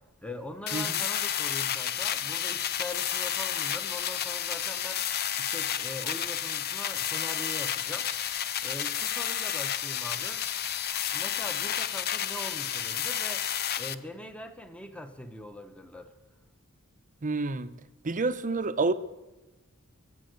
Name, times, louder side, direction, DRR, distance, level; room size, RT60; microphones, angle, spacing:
voice 1, 0.2-5.1 5.4-10.4 11.1-13.5 13.8-16.1, left 1 dB, 5° left, 0.9 m, -42 dB
sound 1, 0.7-13.9, left 9 dB, 45° left, 0.6 m, -31 dB
voice 2, 17.2-17.7 18.0-18.9, right 3 dB, 35° right, 0.7 m, -28 dB
22.0 x 7.8 x 7.9 m
head